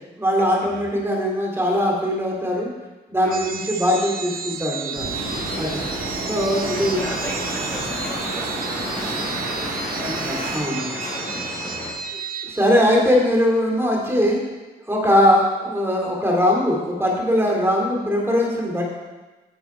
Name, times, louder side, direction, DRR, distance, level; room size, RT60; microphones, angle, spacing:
voice 1, 0.2-2.7 3.1-5.1 5.6-5.8 6.3-7.1 9.9-10.9 12.4-14.4 14.9-18.8, equal, 15° right, -1 dB, 2.6 m, -21 dB
sound 1, 3.3-13.1, right 5 dB, 60° right, 0.9 m, -32 dB
sound 2, 4.9-10.6, right 3 dB, 80° right, 1.9 m, -32 dB
sound 3, 5.1-11.9, left 1 dB, 40° left, 2.7 m, -33 dB
voice 2, 5.4-5.9 6.7-12.0, equal, 15° left, -4 dB, 2.3 m, -37 dB
9.8 x 6.9 x 4.4 m, 1.2 s
cardioid pair, 85°, 17 cm